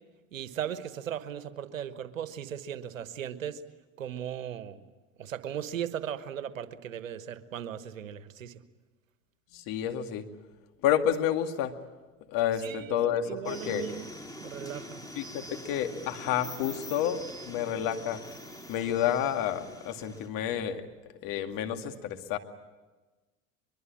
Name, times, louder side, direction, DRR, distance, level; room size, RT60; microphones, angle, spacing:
voice 1, 0.3-3.6 4.0-4.8 5.2-8.6 12.6-14.1 14.4-15.0, right 9 dB, 90° right, 12 dB, 1.3 m, -37 dB
voice 2, 9.5-10.3 10.8-11.7 12.3-13.8 15.1-18.2 18.7-20.8 21.2-22.4, left 10 dB, 55° left, 6 dB, 2.3 m, -30 dB
sound 1, 13.4-20.3, equal, 10° left, 3.1 m, -44 dB
23.5 x 23.0 x 8.7 m, 1.2 s
hypercardioid pair, 80°, 38 cm